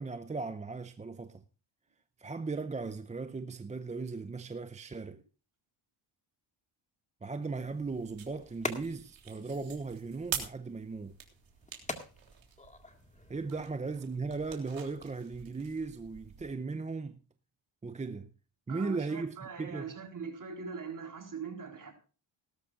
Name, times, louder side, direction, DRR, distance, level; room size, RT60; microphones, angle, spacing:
voice 1, 0.0-1.4 2.2-5.2 7.2-11.2 13.3-17.2 17.8-18.3 18.7-19.9, right 4 dB, 15° right, 0.6 m, -37 dB
sound 1, 7.6-13.6, left 2 dB, 15° left, 1.9 m, -45 dB
sound 2, 7.6-16.5, right 8 dB, 65° right, 3.5 m, -46 dB
voice 2, 18.7-21.9, right 5 dB, 40° right, 4.0 m, -42 dB
18.0 x 13.0 x 2.5 m
cardioid pair, 110°, 49 cm